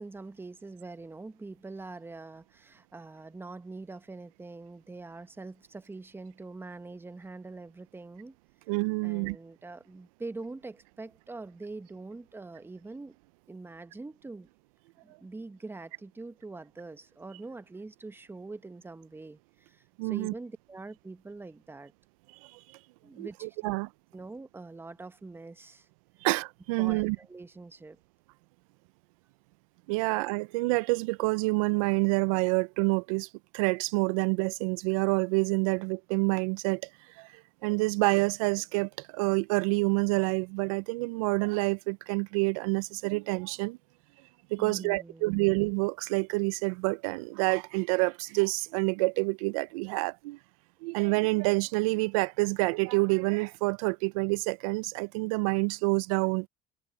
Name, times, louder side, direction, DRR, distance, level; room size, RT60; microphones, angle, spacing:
voice 1, 0.0-8.3 9.0-13.2 13.5-14.5 15.0-21.9 23.0-23.7 24.1-25.9 26.8-28.0 44.6-45.5, right 3 dB, 15° right, 1.1 m, -44 dB
voice 2, 8.7-9.4 20.0-20.3 22.4-22.6 23.2-23.9 26.2-27.2 29.9-33.3 33.5-36.9 37.2-43.8 44.5-50.4 50.8-56.5, right 28 dB, 85° right, 0.5 m, -28 dB
supercardioid pair, 85°, 17 cm